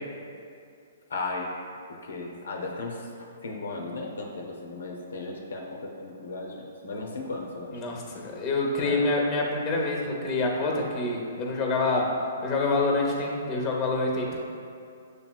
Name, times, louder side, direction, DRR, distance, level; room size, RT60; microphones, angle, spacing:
voice 1, 1.1-1.5 2.0-3.1 3.4-7.7 8.8-9.0, left 3 dB, 80° left, 1 dB, 0.5 m, -35 dB
voice 2, 7.7-12.1 12.4-14.4, left 2 dB, 25° left, 0 dB, 0.7 m, -26 dB
6.5 x 2.9 x 2.2 m, 2.5 s
hypercardioid pair, 135°, 0 cm